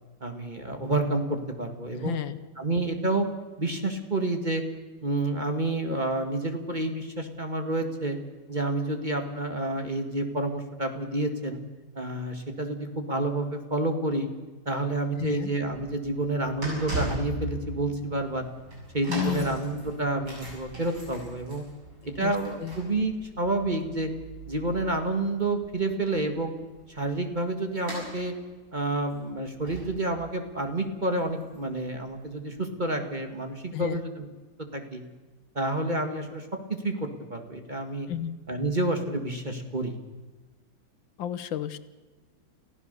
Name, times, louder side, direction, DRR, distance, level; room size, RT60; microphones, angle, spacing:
voice 1, 0.2-2.2 2.6-3.3 3.6-4.6 5.0-8.2 8.5-11.6 12.0-14.3 14.7-18.5 18.9-21.6 22.1-24.1 24.5-26.5 26.9-28.3 28.7-34.3 34.7-35.0 35.6-36.5 36.8-38.1 38.5-40.0, right 2 dB, 25° right, 5 dB, 1.7 m, -29 dB
voice 2, 1.9-2.4 15.1-15.5 19.1-19.6 22.1-22.8 33.7-34.0 38.1-38.4 41.2-41.8, left 11 dB, 75° left, 13 dB, 1.6 m, -32 dB
sound 1, 15.5-32.5 33.1-33.2, right 1 dB, 85° right, 8.3 m, -41 dB
29.0 x 15.5 x 6.7 m, 1.3 s
omnidirectional pair, 2.2 m